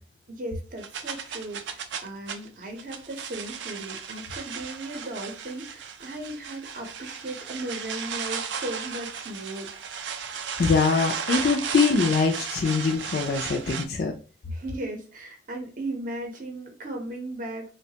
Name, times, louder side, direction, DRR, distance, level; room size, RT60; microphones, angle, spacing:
voice 1, 0.3-9.7 14.4-17.7, right 1 dB, 45° right, 2 dB, 0.7 m, -36 dB
sound 1, 0.8-13.8, right 7 dB, 75° right, 0.4 m, -35 dB
voice 2, 10.6-14.1, left 4 dB, 55° left, 2 dB, 0.3 m, -23 dB
3.0 x 2.2 x 2.8 m, 0.35 s
head